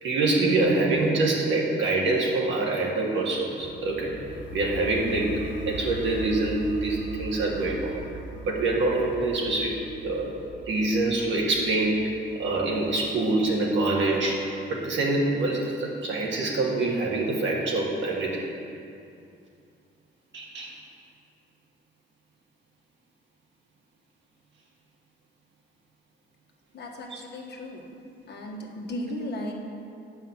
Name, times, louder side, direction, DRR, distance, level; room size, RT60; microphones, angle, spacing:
voice 1, 0.0-4.1 4.5-8.0 8.4-9.8 10.0-10.3 10.7-18.4 20.3-20.7, right 2 dB, 70° right, -2 dB, 1.9 m, -25 dB
sound 1, 3.6-13.5, right 1 dB, 75° left, 0.7 m, -41 dB
voice 2, 26.7-27.9 28.3-29.5, left 1 dB, 55° left, 0 dB, 1.4 m, -35 dB
8.3 x 5.5 x 7.0 m, 2.6 s
cardioid pair, 90°, 20 cm